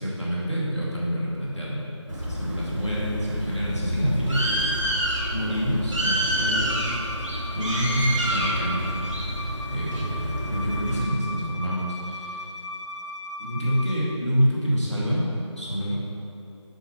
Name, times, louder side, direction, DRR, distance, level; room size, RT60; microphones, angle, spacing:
voice 1, 0.0-4.9 5.3-7.0 7.5-9.1 9.7-12.4 13.4-15.2 15.5-16.0, equal, ahead, -23 dB, 0.7 m, -27 dB
Bird, 2.1-11.0, right 1 dB, 85° right, 1.5 m, -28 dB
Bowed string instrument, 6.7-14.0, left 1 dB, 70° left, 0.7 m, -37 dB
9.8 x 3.8 x 4.7 m, 2.9 s
figure-of-eight pair, 165°, 16 cm